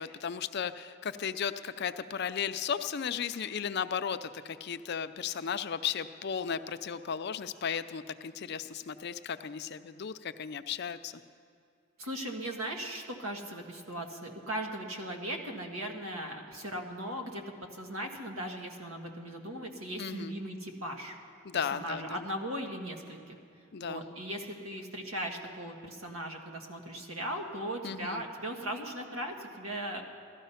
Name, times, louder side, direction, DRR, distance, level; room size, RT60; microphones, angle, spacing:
voice 1, 0.0-11.2 20.0-20.3 21.4-22.2 23.7-24.0 27.8-28.2, left 7 dB, 50° left, 11 dB, 0.5 m, -35 dB
voice 2, 12.0-17.4 17.7-21.2 21.5-23.4 23.8-30.0, right 1 dB, 80° right, 2 dB, 1.7 m, -38 dB
16.0 x 12.5 x 5.7 m, 2.3 s
head